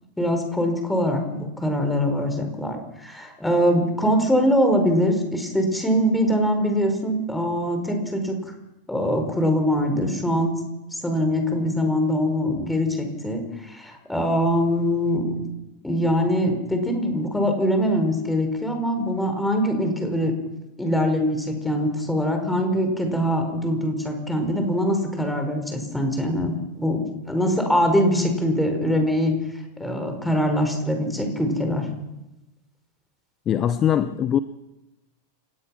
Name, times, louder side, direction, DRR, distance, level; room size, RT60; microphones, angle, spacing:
voice 1, 0.2-8.4 8.9-10.5 10.9-15.4 15.8-20.3 20.8-29.3 29.8-31.9, equal, 5° left, 5 dB, 5.3 m, -23 dB
voice 2, 33.5-34.4, left 9 dB, 30° left, 14 dB, 0.9 m, -21 dB
29.5 x 16.5 x 6.0 m, 0.99 s
figure-of-eight pair, 90°, 0 cm